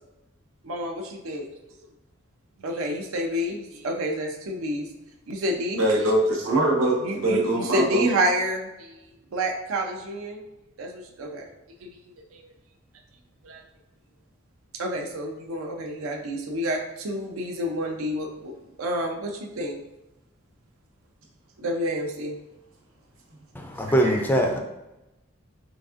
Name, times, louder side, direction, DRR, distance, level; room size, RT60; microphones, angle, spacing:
voice 1, 0.6-1.4 2.6-4.9 5.3-5.8 7.0-10.4 10.8-11.5 11.8-12.0 12.3-12.5 13.4-13.6 14.7-18.5 18.8-19.8 21.6-22.4, equal, 90° right, 2 dB, 0.6 m, -29 dB
voice 2, 5.7-8.1 24.0-24.2, right 1 dB, 70° right, -1 dB, 1.0 m, -23 dB
voice 3, 23.5-24.6, right 1 dB, 10° left, 2 dB, 0.3 m, -22 dB
3.9 x 3.4 x 2.4 m, 0.94 s
head